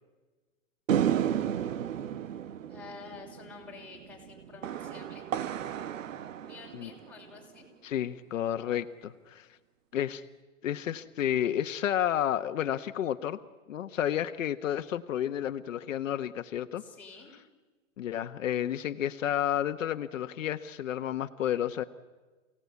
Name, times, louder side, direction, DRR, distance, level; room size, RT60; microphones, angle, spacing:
sound 1, 0.9-7.4, right 10 dB, 80° right, 1.2 m, -33 dB
voice 1, 2.7-5.3 6.4-7.7 16.8-17.3, left 5 dB, 5° left, -3 dB, 5.6 m, -49 dB
voice 2, 7.8-9.5 9.9-10.2 10.6-13.4 13.7-16.8 18.0-21.8, left 10 dB, 75° left, 8 dB, 1.3 m, -31 dB
29.0 x 17.5 x 8.3 m, 1.3 s
hypercardioid pair, 145°, 38 cm